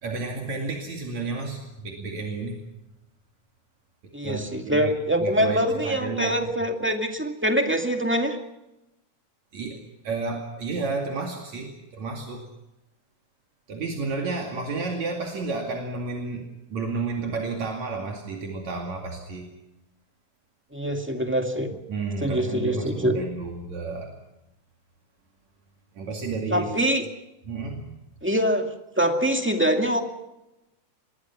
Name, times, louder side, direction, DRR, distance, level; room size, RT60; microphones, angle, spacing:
voice 1, 0.0-2.6 4.2-4.9 5.2-6.7 9.5-12.5 13.7-19.5 21.9-24.1 26.0-26.7 27.5-27.9, right 3 dB, 65° right, 1 dB, 3.7 m, -31 dB
voice 2, 4.1-8.4 20.7-21.7 22.2-23.2 26.5-27.0 28.2-28.7 29.0-30.0, equal, 5° right, 4 dB, 1.6 m, -24 dB
26.5 x 21.5 x 6.0 m, 0.96 s
omnidirectional pair, 3.4 m